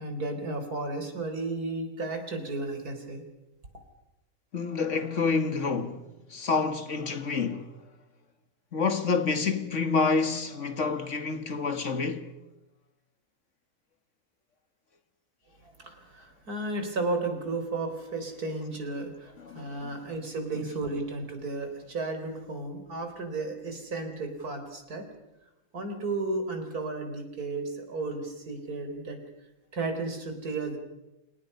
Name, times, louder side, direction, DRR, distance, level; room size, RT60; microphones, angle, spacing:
voice 1, 0.0-3.2 15.6-25.1 25.7-29.2 29.7-30.8, right 3 dB, 85° right, 4.5 m, -33 dB
voice 2, 4.5-6.0 6.3-7.7 8.7-12.4 19.4-19.9, left 4 dB, 55° left, 2.0 m, -28 dB
29.5 x 28.0 x 5.6 m
omnidirectional pair, 1.6 m